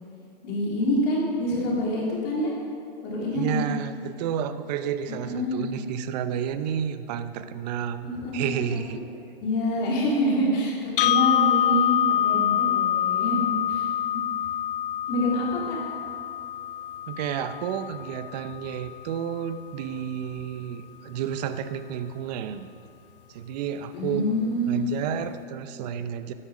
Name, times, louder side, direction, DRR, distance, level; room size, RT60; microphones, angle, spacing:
voice 1, 0.4-2.5 3.0-3.6 5.1-5.6 8.0-8.8 9.4-13.9 15.1-15.8 23.9-24.8, equal, 35° left, -4 dB, 3.2 m, -26 dB
voice 2, 3.3-9.0 17.1-22.7 23.3-24.2 24.7-26.3, right 8 dB, 45° right, 11 dB, 0.7 m, -31 dB
sound 1, 11.0-19.0, left 11 dB, 65° left, 0.4 m, -26 dB
12.0 x 9.9 x 5.0 m, 2.7 s
hypercardioid pair, 130°, 30 cm